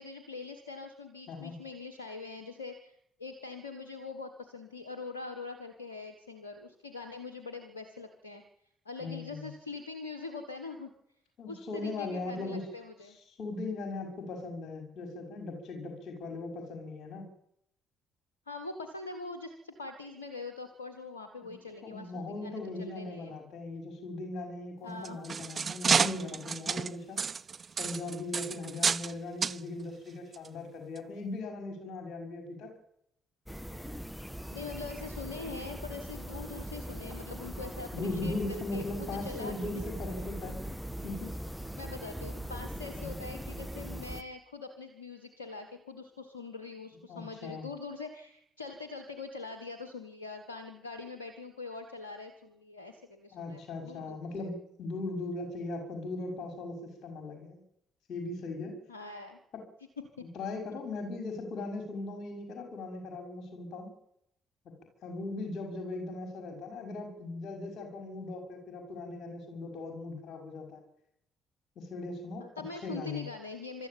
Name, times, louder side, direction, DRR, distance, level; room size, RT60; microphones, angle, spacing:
voice 1, 0.0-2.9 3.2-8.4 8.8-10.9 11.5-13.2 18.5-23.3 24.8-25.2 34.5-38.4 38.7-39.5 41.8-54.5 58.9-59.4 60.2-60.3 72.4-73.9, left 4 dB, 85° left, 7 dB, 1.4 m, -43 dB
voice 2, 1.3-1.6 9.0-9.5 11.4-12.7 13.4-17.3 21.4-21.6 21.8-27.2 27.8-32.7 37.9-40.6 41.0-41.3 42.9-43.2 47.1-47.7 53.3-57.6 58.1-58.7 60.2-63.9 65.0-70.8 71.8-72.5 72.8-73.2, left 2 dB, 55° left, 4 dB, 6.2 m, -39 dB
sound 1, 24.9-29.1 29.4-29.6 30.3-30.5 31.0-31.1, right 6 dB, 40° right, 0.7 m, -30 dB
sound 2, 33.5-44.2, equal, 5° left, 1.6 m, -41 dB
23.5 x 13.5 x 8.9 m, 0.76 s
figure-of-eight pair, 45°, 0 cm